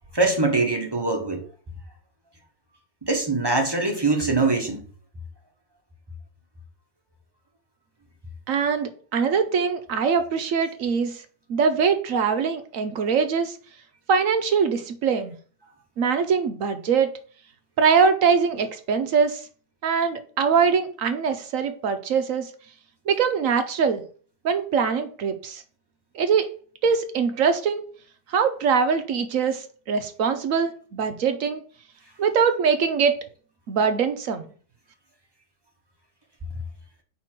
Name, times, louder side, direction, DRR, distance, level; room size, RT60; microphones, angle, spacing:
voice 1, 0.1-1.4 3.0-4.8, right 3 dB, 20° right, 2 dB, 0.6 m, -23 dB
voice 2, 8.5-11.2 11.5-13.6 14.1-15.3 16.0-17.1 17.8-19.4 19.8-22.5 23.1-24.0 24.4-25.6 26.1-26.5 26.8-27.8 28.3-31.6 32.2-33.2 33.7-34.5, right 6 dB, 70° right, 8 dB, 0.8 m, -22 dB
4.5 x 4.2 x 5.8 m, 0.42 s
omnidirectional pair, 2.0 m